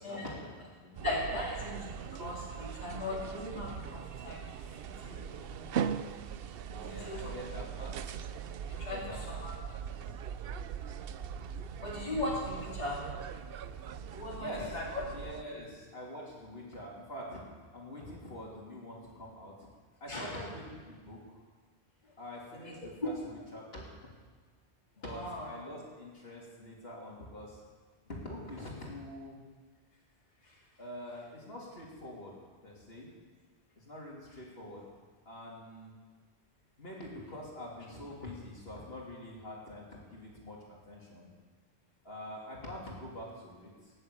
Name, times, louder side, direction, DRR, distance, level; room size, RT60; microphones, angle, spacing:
voice 1, 0.0-1.0 6.7-8.2 8.7-9.5 14.3-14.8 15.1-17.4 17.7-19.5 20.0-21.4 22.2-23.9 25.0-27.6 28.0-29.4 30.8-32.4 32.6-33.1 33.8-34.8 35.2-35.9 36.8-40.6 40.8-41.3 42.0-43.9, left 1 dB, 65° left, -4 dB, 3.4 m, -45 dB
voice 2, 1.0-4.5 4.8-5.7 6.7-7.4 8.7-9.0 9.3-9.5 11.8-13.1 14.1-15.0 20.1-20.4 22.6-22.7 23.0-23.1 25.1-25.5, left 2 dB, 40° left, -5 dB, 2.9 m, -38 dB
sound 1, 1.0-15.4, right 8 dB, 65° right, 0.8 m, -40 dB
19.5 x 7.8 x 8.3 m, 1.5 s
omnidirectional pair, 1.1 m